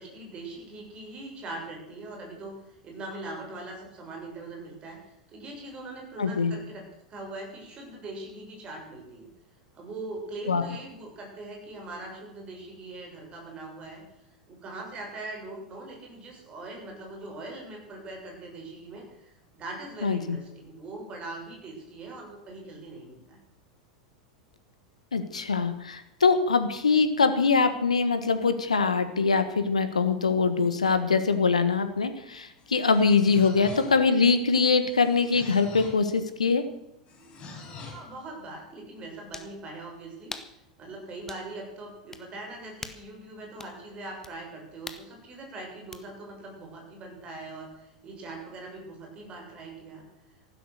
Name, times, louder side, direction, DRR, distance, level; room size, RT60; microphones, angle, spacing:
voice 1, 0.0-9.3 9.7-14.0 14.5-23.4 37.9-40.3 40.8-50.0, right 2 dB, 30° right, 1 dB, 6.9 m, -41 dB
voice 2, 6.2-6.5 10.5-10.6 20.0-20.4 25.1-36.6, left 4 dB, 80° left, 10 dB, 1.5 m, -23 dB
sound 1, 32.6-34.2 34.9-36.1 37.1-38.1, left 4 dB, 30° left, 4.8 m, -44 dB
Close Combat Punches Face Stomach, 37.6-37.7 39.3-39.6 40.3-40.6 41.3-41.5 42.1-42.3 42.8-43.1 43.6-43.8 44.2-44.3 44.9-45.1 45.9-46.0, left 3 dB, 15° left, 1.5 m, -41 dB
14.5 x 12.5 x 6.6 m, 0.84 s
figure-of-eight pair, 85°, 4 cm